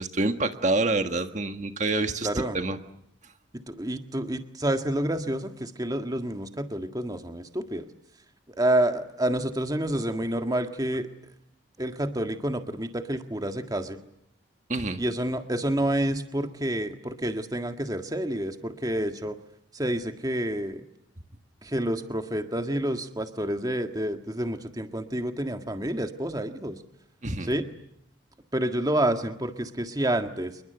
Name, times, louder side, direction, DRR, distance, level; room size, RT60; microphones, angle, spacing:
voice 1, 0.0-2.3 2.5-2.8 14.7-15.0 27.2-27.5, right 2 dB, 35° right, 7 dB, 1.6 m, -27 dB
voice 2, 2.2-2.6 3.5-7.9 8.6-11.1 11.8-14.0 15.0-19.4 19.7-20.8 21.6-26.8 27.4-27.7 28.5-30.6, right 1 dB, 20° right, 6 dB, 1.7 m, -28 dB
28.5 x 22.0 x 7.9 m, 0.76 s
head